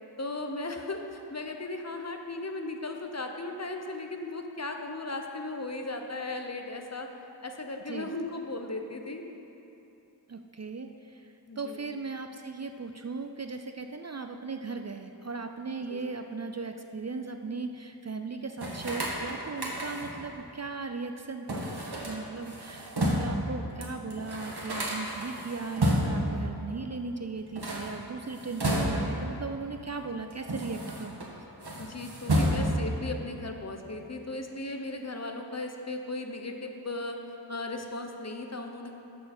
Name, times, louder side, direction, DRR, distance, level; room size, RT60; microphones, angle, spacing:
voice 1, 0.2-7.1 7.4-9.2 11.5-11.9 15.9-16.0 31.8-37.2 37.5-38.9, left 2 dB, 35° left, 4 dB, 0.8 m, -36 dB
voice 2, 10.3-21.7 22.0-31.2, right 4 dB, 40° right, 6 dB, 0.4 m, -37 dB
sound 1, 18.6-20.2 21.5-23.4 23.8-23.9 24.1-26.3 27.4-29.3 30.0-31.3 31.6-32.9, right 1 dB, 60° right, 1.7 m, -30 dB
13.5 x 6.5 x 4.3 m, 2.9 s
wide cardioid pair, 65°, 43 cm